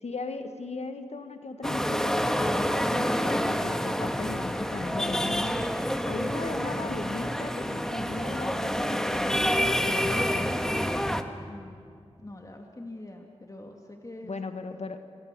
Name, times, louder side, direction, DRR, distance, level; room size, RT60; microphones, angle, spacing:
voice 1, 0.0-5.6 5.9-10.7 14.2-15.0, left 3 dB, 65° left, 7 dB, 1.7 m, -37 dB
sound 1, 1.6-11.2, equal, 5° left, 1.8 m, -28 dB
voice 2, 11.5-11.8 12.2-14.4, left 1 dB, 30° left, 2 dB, 2.5 m, -44 dB
29.0 x 24.5 x 6.9 m, 2.3 s
cardioid pair, 40°, 12 cm